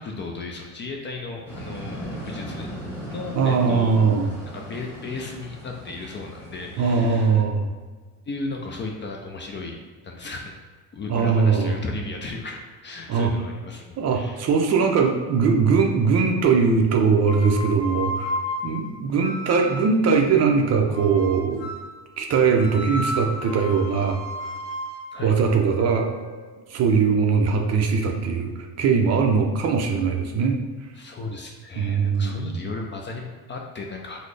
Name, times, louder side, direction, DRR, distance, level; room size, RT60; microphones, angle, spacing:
voice 1, 0.0-2.7 3.1-4.0 4.5-7.4 8.3-10.6 10.9-14.4 25.1-25.4 31.0-34.2, left 3 dB, 30° left, 1 dB, 0.4 m, -35 dB
sound 1, 1.5-7.3, equal, 5° left, 1.5 m, -37 dB
voice 2, 3.4-4.3 6.8-7.7 11.1-11.8 13.1-13.3 14.0-18.3 18.6-21.7 22.2-24.2 25.2-26.1 26.7-30.6 31.8-32.5, right 5 dB, 40° right, 3 dB, 0.4 m, -21 dB
sound 2, 17.2-20.1 20.9-22.0 22.6-26.6, left 1 dB, 65° left, 0.7 m, -33 dB
3.9 x 2.0 x 3.2 m, 1.4 s
cardioid pair, 120°, 39 cm